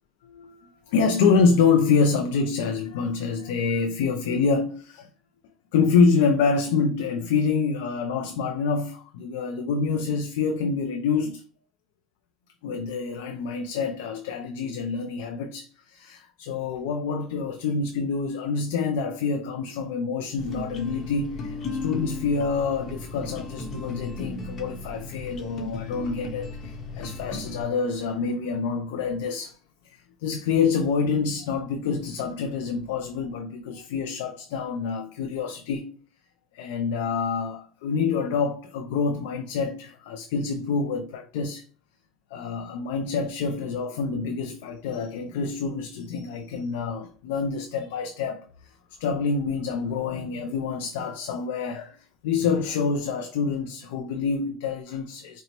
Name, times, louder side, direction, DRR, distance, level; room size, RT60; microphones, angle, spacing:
voice 1, 0.2-5.1 5.7-11.4 12.6-29.6 29.8-35.9 36.5-41.6 42.3-48.5 49.0-55.4, left 5 dB, 85° left, 0.3 m, -26 dB
sound 1, 20.4-27.6, left 3 dB, 45° left, 0.8 m, -35 dB
4.2 x 2.0 x 2.8 m
supercardioid pair, 110°, 0 cm